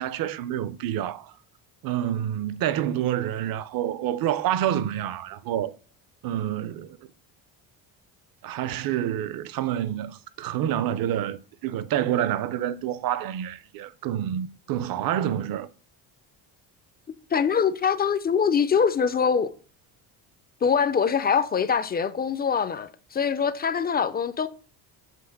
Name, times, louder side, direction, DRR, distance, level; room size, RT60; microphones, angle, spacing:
voice 1, 0.0-1.3 1.8-5.7 6.2-7.0 8.4-15.7, right 11 dB, 55° right, 0.6 m, -28 dB
voice 2, 17.3-19.5 20.6-24.5, left 6 dB, 25° left, 0.3 m, -23 dB
7.7 x 3.2 x 5.8 m
cardioid pair, 125°, 42 cm